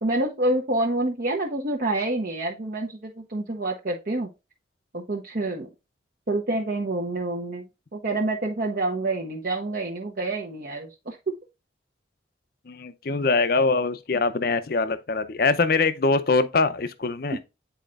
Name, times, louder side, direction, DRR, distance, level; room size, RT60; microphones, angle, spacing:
voice 1, 0.0-4.3 4.9-5.7 6.3-11.2, right 2 dB, 50° right, 0.9 m, -27 dB
voice 2, 12.7-17.4, left 3 dB, 55° left, 0.6 m, -23 dB
9.1 x 4.3 x 2.4 m
head